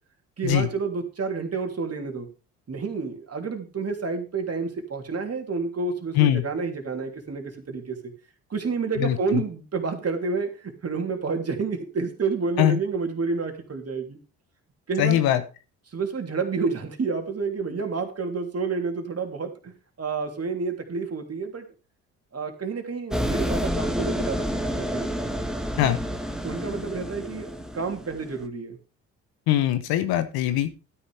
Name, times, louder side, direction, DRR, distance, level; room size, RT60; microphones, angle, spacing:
voice 1, 0.4-2.3 2.7-8.0 8.5-14.2 14.9-15.4 15.9-19.7 20.0-21.6 22.3-25.1 26.4-28.8, right 4 dB, 40° right, 4 dB, 3.3 m, -29 dB
voice 2, 9.0-9.4 12.6-12.8 15.0-15.4 25.8-26.0 29.5-30.7, left 12 dB, 70° left, 10 dB, 1.1 m, -22 dB
sound 1, 23.1-28.5, equal, ahead, 1.7 m, -29 dB
12.5 x 10.0 x 3.4 m, 0.32 s
hypercardioid pair, 55°, 38 cm